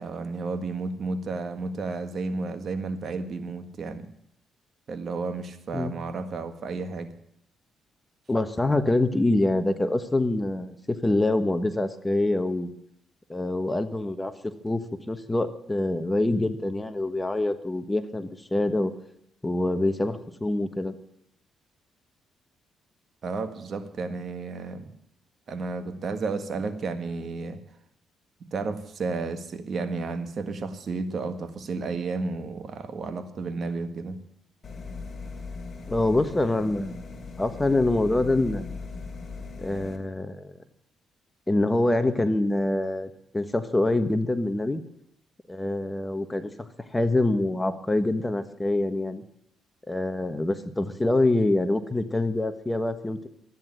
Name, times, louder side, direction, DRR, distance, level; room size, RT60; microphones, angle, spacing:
voice 1, 0.0-4.1 4.9-7.1 23.2-24.9 25.5-27.6 28.5-34.2, right 4 dB, 50° right, 9 dB, 1.7 m, -32 dB
voice 2, 8.3-12.7 13.3-14.8 15.1-18.9 19.4-20.9 35.9-36.9 37.4-38.6 39.6-40.5 41.5-44.8 45.5-49.2 49.9-53.3, left 2 dB, 15° left, 10 dB, 1.3 m, -25 dB
sound 1, 34.6-40.0, left 4 dB, 35° left, 2.7 m, -39 dB
13.5 x 9.8 x 9.1 m, 0.74 s
cardioid pair, 90°, 0 cm